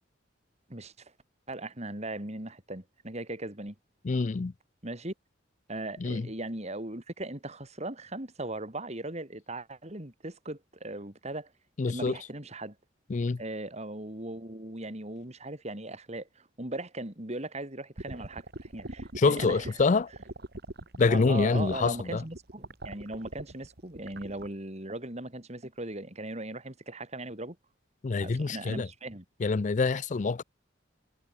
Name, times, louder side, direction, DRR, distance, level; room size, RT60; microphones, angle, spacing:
voice 1, 1.5-3.7 4.8-5.1 5.7-11.5 11.8-12.7 13.4-19.7 21.1-27.6 28.2-29.2, right 2 dB, 35° right, 3.0 m, -38 dB
voice 2, 4.0-4.5 6.0-6.3 11.8-12.2 13.1-13.4 19.2-20.1 21.0-22.2 28.0-28.9 29.4-30.4, left 4 dB, 40° left, 0.4 m, -26 dB
sound 1, 18.0-24.5, right 1 dB, 55° right, 2.3 m, -42 dB
head